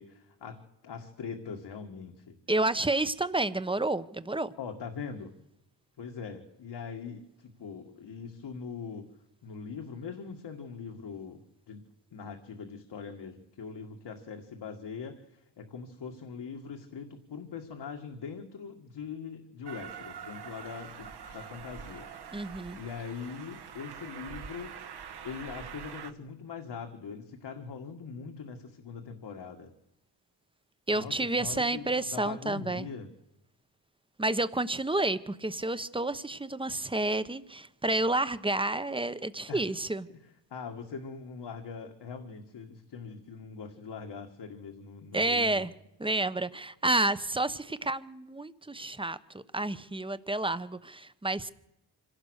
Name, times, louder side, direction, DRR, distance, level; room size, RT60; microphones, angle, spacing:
voice 1, 0.0-2.4 4.6-5.3 6.0-9.1 9.4-11.8 12.1-24.9 25.2-29.7 30.9-33.1 39.5-39.6 40.1-40.2 40.5-45.7, left 5 dB, 70° left, 4 dB, 2.2 m, -42 dB
voice 2, 2.5-4.5 22.3-22.8 30.9-32.9 34.2-40.1 45.1-45.7 46.0-51.5, right 2 dB, 10° right, 14 dB, 1.0 m, -30 dB
Train, 19.6-26.1, right 7 dB, 65° right, 1.7 m, -44 dB
25.5 x 17.5 x 6.6 m, 0.87 s
cardioid pair, 90°, 43 cm